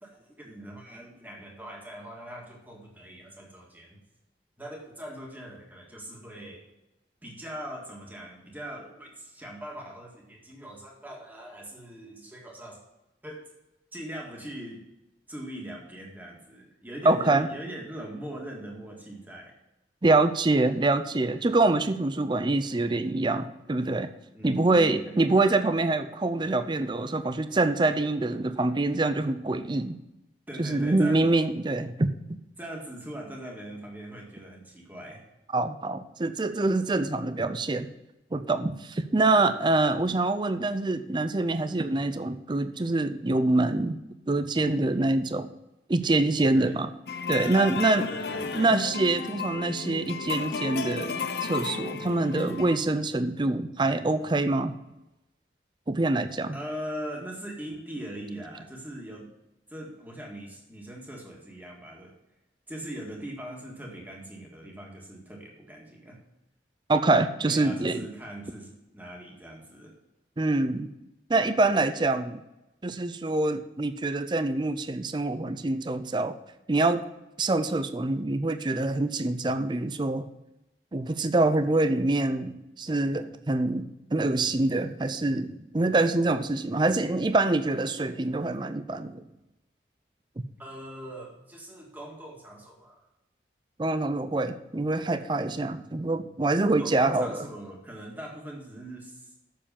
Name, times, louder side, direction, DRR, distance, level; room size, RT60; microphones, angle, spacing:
voice 1, 0.0-4.0 4.6-6.7 7.2-12.8 13.2-13.5 13.9-14.8 15.3-19.6 24.3-25.2 30.5-31.2 32.6-35.2 46.5-46.8 47.9-48.6 56.5-59.3 59.7-62.1 62.7-66.2 67.4-69.9 90.6-93.1 96.8-99.3, right 1 dB, 10° right, -1 dB, 1.9 m, -41 dB
voice 2, 17.0-17.5 20.0-24.1 24.4-30.0 30.6-32.1 35.5-37.9 38.3-44.0 44.3-45.5 45.9-46.9 47.3-48.1 48.5-51.2 51.4-54.8 55.9-56.6 66.9-68.1 70.4-70.9 71.3-72.4 72.8-76.4 76.7-77.0 77.4-80.3 80.9-89.3 90.4-90.5 93.8-97.5, right 2 dB, 25° right, 11 dB, 0.5 m, -25 dB
sound 1, 47.1-52.8, left 5 dB, 60° left, 0.7 m, -33 dB
7.5 x 7.0 x 7.0 m, 0.94 s
head